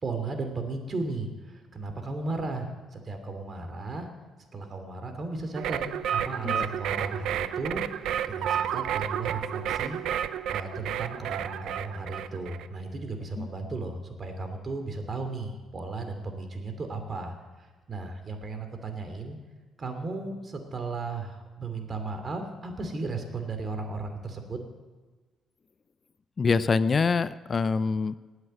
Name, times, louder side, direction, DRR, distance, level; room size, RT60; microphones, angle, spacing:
voice 1, 0.0-4.1 4.5-5.8 6.1-10.0 10.5-19.4 19.8-24.6, right 3 dB, 40° right, 6 dB, 2.7 m, -35 dB
sound 1, 5.6-12.7, right 9 dB, 80° right, 0.6 m, -31 dB
voice 2, 26.4-28.2, left 4 dB, 40° left, 15 dB, 0.5 m, -25 dB
19.0 x 8.1 x 7.6 m, 1.3 s
cardioid pair, 90°, 0 cm